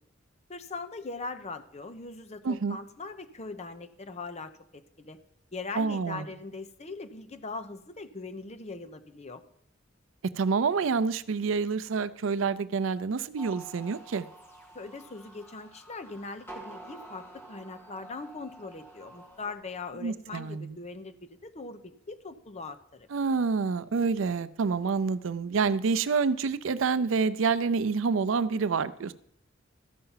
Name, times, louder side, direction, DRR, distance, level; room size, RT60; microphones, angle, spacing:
voice 1, 0.5-5.2 5.5-9.4 14.7-23.1, left 3 dB, 35° left, 9 dB, 0.7 m, -41 dB
voice 2, 2.4-2.8 5.8-6.3 10.4-14.3 20.0-20.8 23.1-29.1, right 5 dB, 70° right, 14 dB, 0.5 m, -27 dB
sound 1, 13.4-19.5, right 2 dB, 10° left, 1.7 m, -48 dB
13.5 x 5.7 x 5.6 m, 0.69 s
head